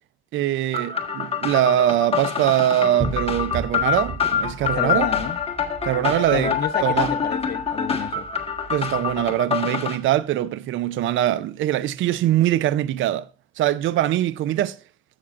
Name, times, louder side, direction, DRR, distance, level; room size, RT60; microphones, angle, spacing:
voice 1, 0.3-5.1 5.8-6.5 6.8-7.1 8.7-13.3 13.6-14.8, right 12 dB, 80° right, 0.5 m, -22 dB
sound 1, 0.7-10.0, left 7 dB, 30° left, 1.6 m, -26 dB
sound 2, 3.0-9.3, right 3 dB, 20° right, 2.6 m, -36 dB
voice 2, 4.7-5.4 6.3-8.3, left 9 dB, 55° left, 0.8 m, -29 dB
13.0 x 7.3 x 2.5 m
cardioid pair, 90°, 20 cm